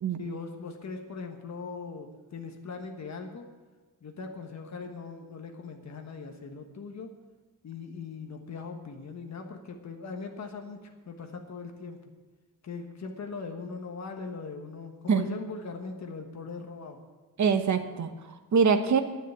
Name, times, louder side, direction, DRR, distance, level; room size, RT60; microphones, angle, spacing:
voice 1, 0.2-3.5 4.0-7.1 7.6-12.0 12.6-17.0, left 4 dB, 55° left, 4 dB, 1.3 m, -40 dB
voice 2, 17.4-19.0, right 6 dB, 60° right, 8 dB, 1.1 m, -24 dB
11.5 x 9.9 x 8.2 m, 1.2 s
wide cardioid pair, 160°, 33 cm